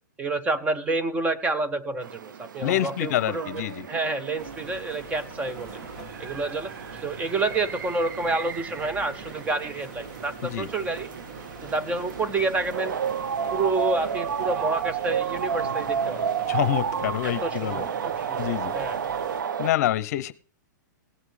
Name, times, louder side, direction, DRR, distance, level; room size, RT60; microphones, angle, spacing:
voice 1, 0.2-5.8 6.2-6.7 7.0-11.1 11.6-12.9 13.5-16.2 17.2-18.5 18.7-19.0, right 3 dB, 15° right, 10 dB, 0.6 m, -29 dB
sound 1, 2.0-19.7, right 7 dB, 85° right, 0.5 m, -32 dB
voice 2, 2.6-3.9 10.4-10.7 16.5-17.8 18.4-18.7 19.6-20.3, left 13 dB, 55° left, 15 dB, 0.7 m, -26 dB
sound 2, 4.4-19.4, right 2 dB, 45° right, 2.3 m, -43 dB
17.5 x 7.3 x 3.3 m, 0.41 s
hypercardioid pair, 140°, 10 cm